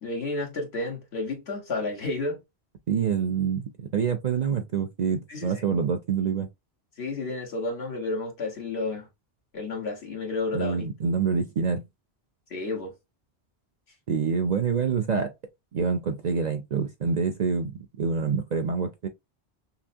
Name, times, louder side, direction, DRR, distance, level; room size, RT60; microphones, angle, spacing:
voice 1, 0.0-2.4 5.3-5.7 7.0-9.1 9.5-10.9 12.5-12.9, left 2 dB, 70° left, 1.6 m, -31 dB
voice 2, 2.9-6.5 10.5-11.8 14.1-15.3 15.7-19.1, right 6 dB, 50° right, 0.5 m, -26 dB
5.7 x 2.0 x 2.6 m
omnidirectional pair, 1.1 m